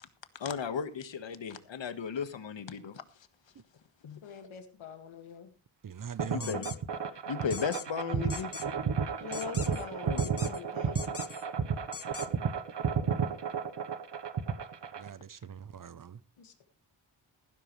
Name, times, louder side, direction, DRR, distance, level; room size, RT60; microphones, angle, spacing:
voice 1, 0.4-3.0 4.0-4.2 6.3-6.8 7.3-8.5 10.0-10.3, left 6 dB, 70° left, 1.6 m, -35 dB
voice 2, 4.2-5.5 9.2-11.1 16.4-16.6, left 6 dB, 85° left, 2.2 m, -44 dB
voice 3, 5.8-6.6 15.0-16.2, right 7 dB, 45° right, 0.7 m, -42 dB
sound 1, 6.2-15.1, right 6 dB, 60° right, 1.2 m, -32 dB
sound 2, 6.4-6.8 7.5-7.9 8.3-8.7 9.3-9.9 10.2-10.6 11.0-11.5 11.9-12.3, left 7 dB, 30° left, 0.6 m, -42 dB
15.0 x 12.5 x 3.2 m
cardioid pair, 85°, 47 cm